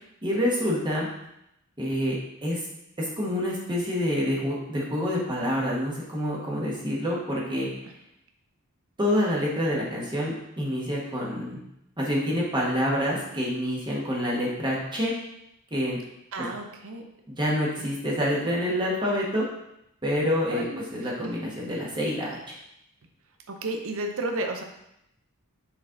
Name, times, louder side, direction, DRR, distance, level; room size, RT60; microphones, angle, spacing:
voice 1, 0.2-1.1 1.8-2.6 3.0-7.7 9.0-11.6 12.0-15.1 15.7-16.0 17.3-19.4 20.0-22.5, equal, 20° right, -5 dB, 1.3 m, -27 dB
voice 2, 16.3-17.0 20.5-20.8 21.2-21.3 23.5-24.6, right 2 dB, 65° right, 4 dB, 0.7 m, -32 dB
6.2 x 4.1 x 3.8 m, 0.81 s
head